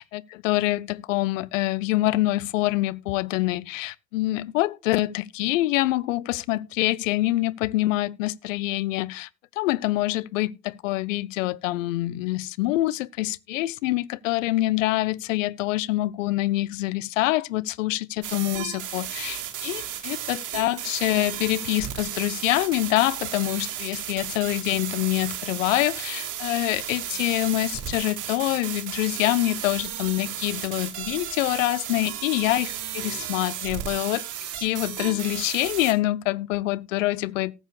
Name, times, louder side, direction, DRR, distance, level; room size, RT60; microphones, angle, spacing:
voice 1, 0.0-9.3 9.6-32.7 32.9-34.3 34.6-37.5, left 17 dB, 70° left, 0.7 m, -25 dB
sound 1, 18.2-35.9, right 11 dB, 50° right, 2.3 m, -34 dB
18.5 x 7.3 x 2.4 m
figure-of-eight pair, 60°, 41 cm